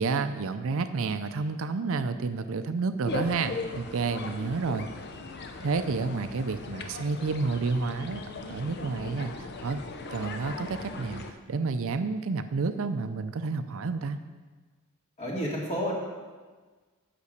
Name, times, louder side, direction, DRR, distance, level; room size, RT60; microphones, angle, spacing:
voice 1, 0.0-4.9 5.6-8.2 8.5-9.8 10.1-11.2 11.5-14.2, right 4 dB, 65° right, 10 dB, 0.5 m, -30 dB
sound 1, 3.0-11.3, left 2 dB, 50° left, 0.7 m, -38 dB
voice 2, 15.2-15.9, equal, 30° left, -3 dB, 2.3 m, -30 dB
8.3 x 6.0 x 6.6 m, 1.4 s
head